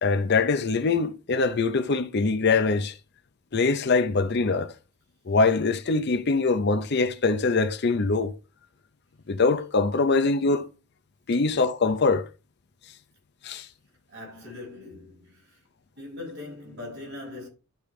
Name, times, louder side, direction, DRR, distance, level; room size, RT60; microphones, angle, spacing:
voice 1, 0.0-2.9 3.5-4.7 5.3-8.3 9.3-10.7 11.3-12.2 13.4-13.7, left 4 dB, 55° left, 0.7 m, -23 dB
voice 2, 14.1-15.6 16.0-17.5, left 2 dB, 55° right, 5.8 m, -40 dB
12.0 x 5.3 x 3.2 m
head